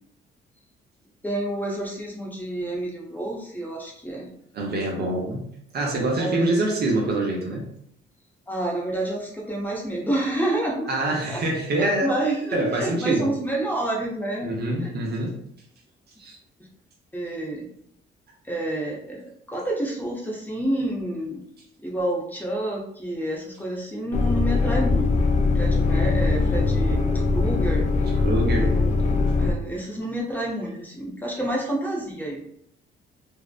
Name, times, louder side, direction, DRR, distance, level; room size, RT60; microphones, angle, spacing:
voice 1, 1.2-4.3 6.2-6.5 8.5-11.4 11.8-14.5 14.8-14.9 17.1-17.7 18.5-19.2 19.5-21.4 21.8-25.3 25.5-27.9 28.6-32.4, right 1 dB, 10° left, -2 dB, 0.7 m, -29 dB
voice 2, 4.5-5.4 5.7-7.7 10.9-12.1 12.5-13.3 14.4-15.4 16.2-16.4 28.2-28.7, right 2 dB, 55° right, 0 dB, 0.7 m, -25 dB
sound 1, 24.1-29.5, left 3 dB, 40° left, 0.4 m, -21 dB
2.6 x 2.0 x 2.4 m, 0.69 s
cardioid pair, 90°, 20 cm